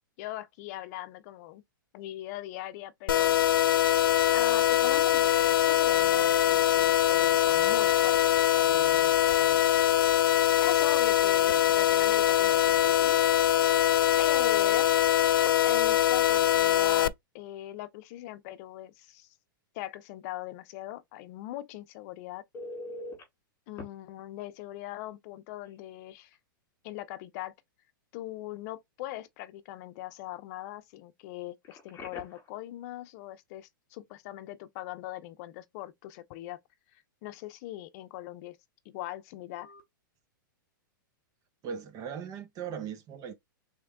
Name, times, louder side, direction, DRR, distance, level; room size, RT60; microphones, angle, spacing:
voice 1, 0.2-1.6 1.9-3.4 4.3-9.1 9.4-9.6 10.6-13.2 14.2-14.9 15.6-19.3 19.7-22.4 23.7-26.4 26.8-27.5 28.1-36.6 36.9-38.6 38.8-39.7, left 15 dB, 50° left, 0.7 m, -41 dB
sound 1, 3.1-17.1, left 12 dB, 85° left, 0.4 m, -23 dB
Telephone, 22.5-23.2 23.8-23.9 25.6-25.8 26.2-26.3 31.6-32.5 39.6-39.8, left 1 dB, 25° left, 2.2 m, -42 dB
voice 2, 41.6-43.3, right 7 dB, 35° right, 1.0 m, -38 dB
3.5 x 3.3 x 3.6 m
hypercardioid pair, 130°, 11 cm